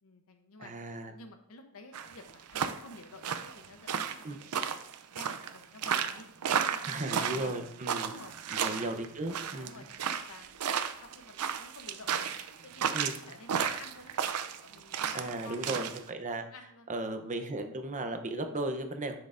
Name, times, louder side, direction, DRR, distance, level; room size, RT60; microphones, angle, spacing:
voice 1, 0.0-4.8 5.1-6.3 6.5-7.6 8.0-8.4 8.7-9.0 9.6-10.6 11.0-16.0 16.4-16.9, left 3 dB, 70° left, 6 dB, 0.8 m, -51 dB
voice 2, 0.6-1.1 4.2-4.4 6.9-8.1 8.5-9.7 12.9-13.2 15.1-16.4 16.9-19.2, right 2 dB, 35° right, 6 dB, 0.8 m, -36 dB
sound 1, 1.9-16.0, right 7 dB, 90° right, 0.5 m, -33 dB
10.5 x 6.2 x 2.6 m, 0.73 s
head